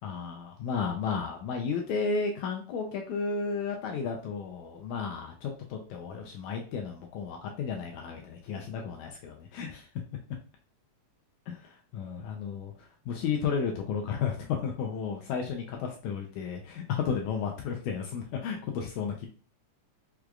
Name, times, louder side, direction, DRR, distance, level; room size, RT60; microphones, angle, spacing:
voice 1, 0.0-9.9 11.5-12.7 13.1-19.3, left 5 dB, 80° left, 1 dB, 1.7 m, -33 dB
6.1 x 2.3 x 2.3 m, 0.39 s
omnidirectional pair, 3.7 m